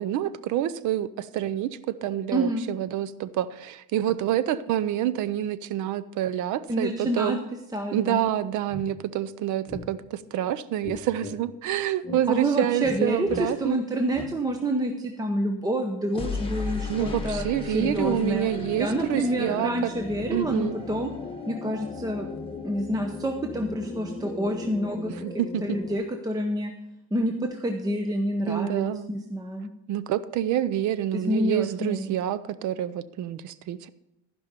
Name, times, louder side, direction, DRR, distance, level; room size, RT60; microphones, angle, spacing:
voice 1, 0.0-7.4 7.9-13.8 16.9-19.9 20.3-20.8 25.2-25.8 28.5-29.1 29.9-33.9, right 11 dB, 65° right, 16 dB, 0.6 m, -27 dB
voice 2, 2.3-2.6 6.7-7.4 7.7-8.2 12.3-17.5 17.7-18.5 18.8-21.1 21.5-22.3 22.6-25.3 25.6-26.7 27.1-29.7 31.1-32.2, equal, 10° right, 4 dB, 0.7 m, -28 dB
sound 1, 8.3-8.4 8.7-8.9 9.7-9.9 10.8-11.4 12.0-12.2 12.8-13.0 13.3-13.5 14.1-14.3 16.1-25.9, left 3 dB, 15° left, 1.4 m, -36 dB
14.5 x 5.4 x 5.2 m, 0.89 s
cardioid pair, 125°, 33 cm